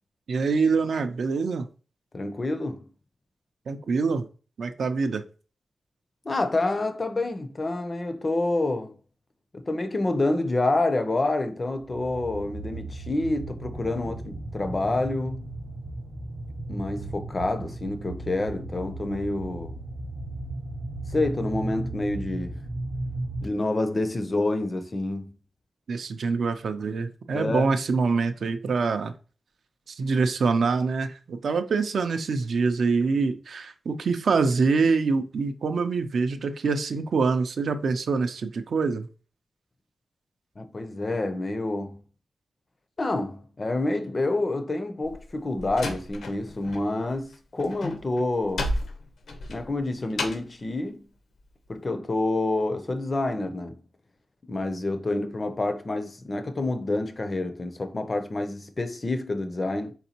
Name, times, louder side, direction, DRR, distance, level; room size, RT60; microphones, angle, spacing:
voice 1, 0.3-1.7 3.7-4.3 4.6-5.2 25.9-29.1 29.9-39.1, right 4 dB, 65° right, 0.4 m, -25 dB
voice 2, 2.1-2.9 6.3-8.9 9.5-15.5 16.7-19.8 21.1-22.5 23.4-25.3 27.3-27.7 40.6-42.0 43.0-48.7 49.5-51.0 51.7-53.8 54.5-59.9, left 2 dB, 25° left, 0.4 m, -28 dB
sound 1, 11.8-23.4, right 2 dB, 30° right, 0.7 m, -36 dB
Slam, 45.0-46.8 47.1-50.6, left 1 dB, 85° left, 0.7 m, -33 dB
4.3 x 4.0 x 2.8 m
wide cardioid pair, 175°, 0 cm